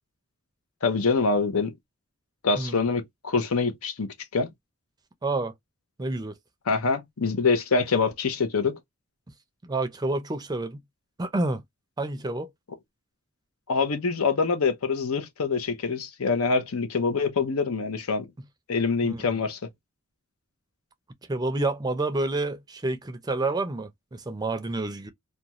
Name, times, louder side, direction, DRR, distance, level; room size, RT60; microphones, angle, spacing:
voice 1, 0.8-1.7 2.4-4.5 6.7-8.8 13.7-18.3 18.7-19.6, left 4 dB, 80° left, 0.7 m, -25 dB
voice 2, 5.2-5.5 6.0-6.4 9.6-10.8 11.2-11.6 12.0-12.5 19.0-19.4 21.3-25.1, right 2 dB, 20° right, 0.4 m, -29 dB
2.4 x 2.2 x 2.9 m
head